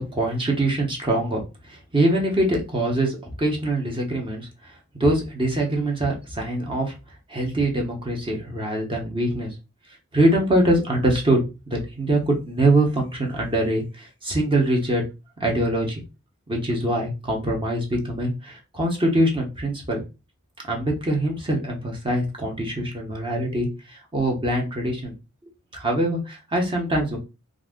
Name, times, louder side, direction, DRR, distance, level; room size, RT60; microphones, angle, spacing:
voice 1, 0.0-1.4 1.7-4.5 4.9-6.9 7.3-9.5 10.1-15.0 15.4-16.0 16.5-20.0 20.6-25.1 25.7-27.2, right 1 dB, 25° right, 1 dB, 0.9 m, -23 dB
2.5 x 2.3 x 3.6 m, 0.28 s
head